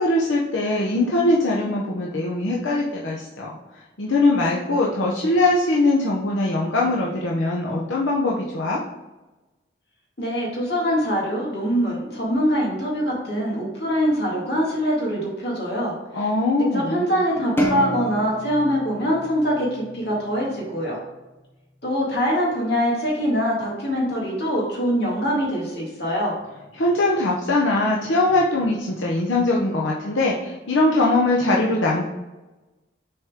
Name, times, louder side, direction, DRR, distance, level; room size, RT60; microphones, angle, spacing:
voice 1, 0.0-3.6 4.0-8.8 16.1-17.1 26.7-32.1, left 2 dB, 90° left, -3 dB, 0.8 m, -21 dB
voice 2, 10.2-16.3 16.7-21.0 21.8-26.3, equal, 60° left, -4 dB, 2.2 m, -23 dB
sound 1, 17.6-20.1, equal, 10° left, 0.7 m, -27 dB
6.7 x 4.4 x 3.6 m, 1.1 s
head